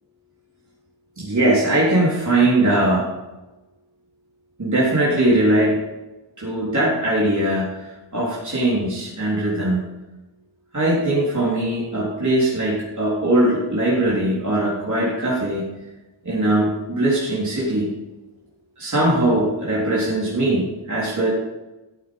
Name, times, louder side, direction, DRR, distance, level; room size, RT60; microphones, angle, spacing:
voice 1, 1.2-3.1 4.6-5.8 6.4-9.8 10.7-15.6 16.2-17.9 18.8-21.3, right 1 dB, 40° right, -7 dB, 3.7 m, -20 dB
14.5 x 8.2 x 5.4 m, 1.1 s
wide cardioid pair, 105°, 46 cm